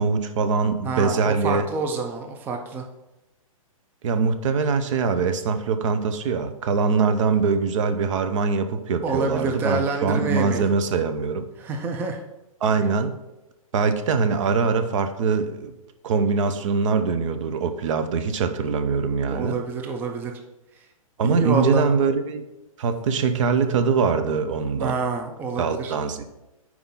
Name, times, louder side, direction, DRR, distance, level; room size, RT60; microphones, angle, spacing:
voice 1, 0.0-1.7 4.0-11.5 12.6-13.2 13.7-15.7 16.0-19.6 21.2-22.5 22.8-25.0 25.6-26.2, right 5 dB, 60° right, 9 dB, 0.6 m, -23 dB
voice 2, 0.8-2.9 9.0-10.7 11.6-12.2 19.3-20.3 21.2-21.9 24.8-25.9, right 4 dB, 10° right, 3 dB, 0.4 m, -27 dB
4.6 x 3.7 x 5.5 m, 0.96 s
hypercardioid pair, 140°, 18 cm